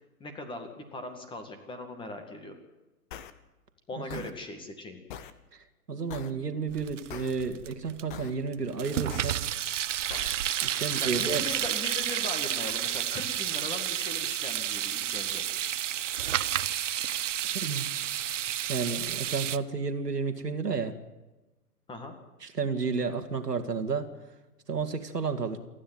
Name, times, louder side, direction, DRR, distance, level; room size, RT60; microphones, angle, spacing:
voice 1, 0.2-2.6 3.9-5.0 11.0-15.5 21.9-22.2, left 2 dB, 10° left, 7 dB, 2.0 m, -39 dB
sound 1, 3.1-3.3 4.1-4.3 5.1-5.3 6.1-6.3 7.1-7.3 8.1-8.3 9.1-9.3 10.1-10.3, left 9 dB, 30° left, 1.1 m, -41 dB
voice 2, 4.0-4.3 5.5-9.4 10.6-11.4 17.5-17.9 18.7-21.0 22.4-24.1 24.7-25.6, right 5 dB, 85° right, 6 dB, 2.3 m, -32 dB
sound 2, 6.7-8.1 8.5-19.6, right 11 dB, 50° right, 0.8 m, -31 dB
28.0 x 10.0 x 9.3 m, 1.1 s
figure-of-eight pair, 130°, 47 cm